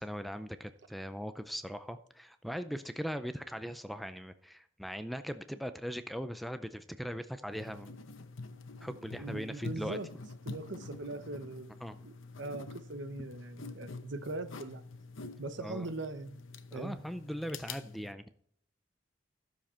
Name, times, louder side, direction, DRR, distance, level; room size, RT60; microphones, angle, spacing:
voice 1, 0.0-7.9 8.8-10.0 11.8-12.0 15.6-15.9 16.7-18.2, equal, ahead, 0.4 m, -40 dB
sound 1, 7.5-18.1, left 3 dB, 85° left, 0.9 m, -47 dB
voice 2, 8.8-10.1 10.4-11.7 12.0-14.8 15.4-16.4 16.7-17.0, right 2 dB, 65° right, 0.9 m, -41 dB
13.0 x 7.2 x 4.4 m
head